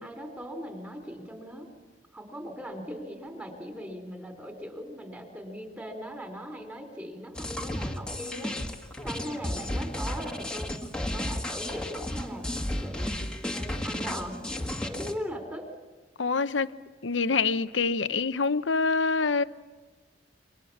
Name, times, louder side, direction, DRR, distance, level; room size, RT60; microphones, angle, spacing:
voice 1, 0.0-1.7 2.1-8.5 9.0-10.9 11.1-12.5 12.8-13.2 13.4-14.4 14.8-15.7, equal, 10° right, 4.5 m, -39 dB
sound 1, 7.3-15.1, left 1 dB, 5° left, 1.8 m, -33 dB
voice 2, 16.2-16.7 17.0-19.4, left 4 dB, 80° left, 0.9 m, -25 dB
29.0 x 25.0 x 7.3 m
head